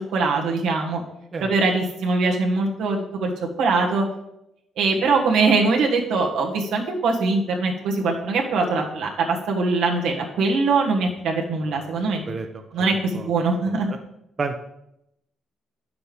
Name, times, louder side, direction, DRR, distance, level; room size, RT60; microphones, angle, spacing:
voice 1, 0.1-1.0 1.4-3.3 3.6-4.0 4.8-12.3 12.7-13.9, right 3 dB, 85° right, -1 dB, 1.6 m, -22 dB
voice 2, 12.0-12.9 13.1-13.3 13.7-14.0 14.4-14.6, right 4 dB, 35° right, 5 dB, 0.6 m, -31 dB
9.3 x 6.9 x 3.5 m, 0.82 s
cardioid pair, 130°, 0 cm